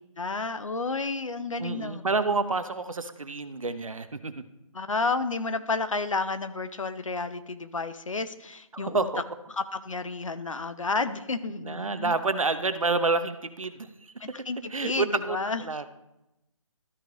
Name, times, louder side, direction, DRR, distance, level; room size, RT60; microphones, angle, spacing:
voice 1, 0.2-2.0 4.7-9.1 9.5-12.1 14.2-15.6, left 3 dB, 70° left, 11 dB, 0.8 m, -31 dB
voice 2, 1.6-4.3 8.7-9.2 11.6-14.4 14.7-15.9, right 3 dB, 75° right, 11 dB, 0.8 m, -29 dB
13.0 x 4.6 x 3.8 m, 0.90 s
figure-of-eight pair, 150°, 17 cm